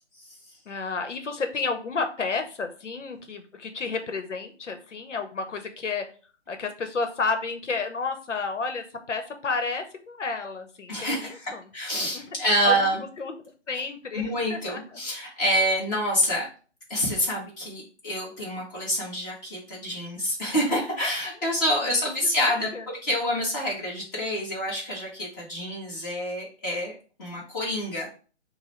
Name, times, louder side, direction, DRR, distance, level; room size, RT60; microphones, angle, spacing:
voice 1, 0.7-6.1 6.5-11.6 12.1-12.2 12.6-12.8 13.2-13.3 13.7-15.0 22.4-22.9, left 4 dB, 85° left, 6 dB, 1.0 m, -31 dB
voice 2, 10.9-13.0 14.1-16.5 16.9-22.7 23.0-28.1, equal, 15° left, -5 dB, 1.3 m, -27 dB
6.1 x 2.2 x 3.1 m, 0.38 s
hypercardioid pair, 160°, 35 cm